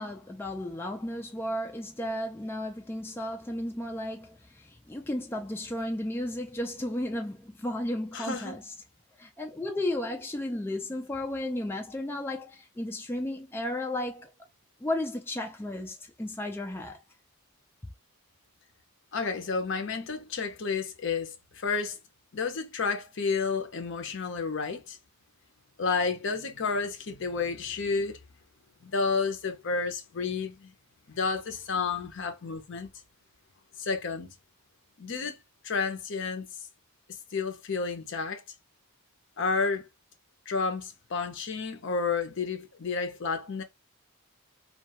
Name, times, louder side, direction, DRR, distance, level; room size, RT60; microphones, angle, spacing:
voice 1, 0.0-8.6 9.2-14.3 14.8-17.0, left 1 dB, 10° left, 0.3 m, -34 dB
voice 2, 8.1-8.6 19.1-22.0 22.3-25.0 25.8-28.2 28.8-30.7 31.1-32.9 33.8-34.3 35.0-35.4 35.6-36.5 37.3-38.4 39.4-39.9 40.5-43.6, left 4 dB, 55° left, 0.6 m, -31 dB
2.3 x 2.2 x 2.7 m
head